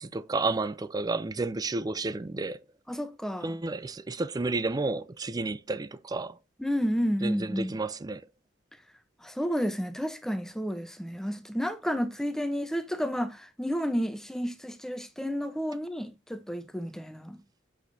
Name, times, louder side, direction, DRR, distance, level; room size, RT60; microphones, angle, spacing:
voice 1, 0.0-2.6 3.4-6.4 7.2-8.2, right 3 dB, 20° right, 0.4 m, -31 dB
voice 2, 2.9-3.6 6.6-7.7 9.2-17.4, equal, 5° left, 0.8 m, -31 dB
8.0 x 6.3 x 2.7 m
head